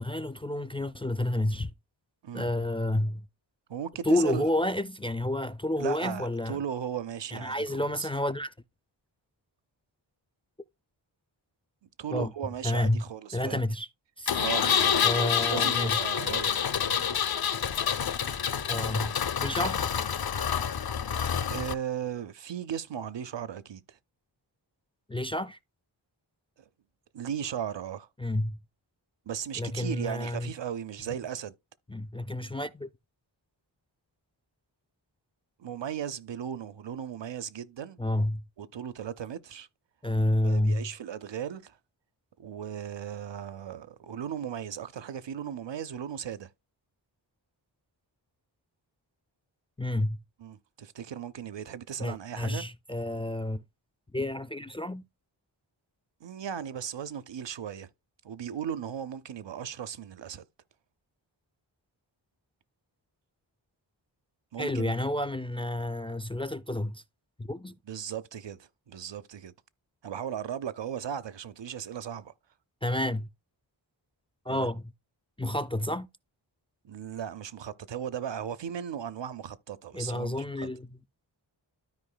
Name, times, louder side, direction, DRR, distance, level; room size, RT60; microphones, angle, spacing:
voice 1, 0.0-1.7 2.3-3.3 4.0-6.6 7.3-8.5 12.1-12.3 12.6-13.0 13.3-13.9 14.2-14.4 15.0-16.0 18.7-19.1 19.4-19.8 25.1-25.6 28.2-28.6 29.6-30.5 31.9-32.9 38.0-38.4 40.0-40.9 49.8-50.2 52.0-53.6 54.1-55.0 64.6-67.0 67.4-67.8 72.8-73.3 74.5-74.8 75.4-76.1 79.9-80.9, left 1 dB, 15° left, 0.3 m, -30 dB
voice 2, 3.7-4.5 5.8-8.1 12.0-13.6 14.4-17.1 21.5-24.0 27.1-28.1 29.3-31.5 35.6-38.0 38.6-39.7 40.4-41.8 42.4-46.5 50.4-52.6 56.2-57.9 58.2-60.4 64.5-64.9 67.9-69.5 70.0-72.3 74.5-74.7 76.8-80.4, right 9 dB, 65° right, 0.7 m, -37 dB
Engine, 14.3-21.7, left 8 dB, 50° left, 0.6 m, -28 dB
13.0 x 4.8 x 2.2 m
wide cardioid pair, 55°, 47 cm